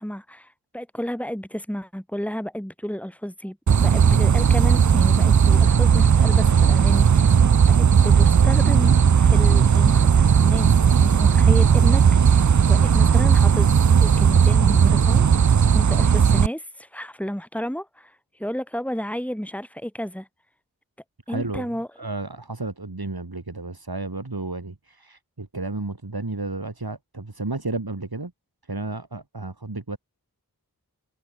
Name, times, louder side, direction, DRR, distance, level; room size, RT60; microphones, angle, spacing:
voice 1, 0.0-7.4 7.7-13.7 14.0-20.3 21.3-21.9, equal, 5° left, 4.7 m, -32 dB
sound 1, 3.7-16.5, right 7 dB, 50° right, 0.5 m, -16 dB
voice 2, 21.3-28.3 28.6-30.0, right 3 dB, 75° right, 5.7 m, -32 dB
wide cardioid pair, 40°, 37 cm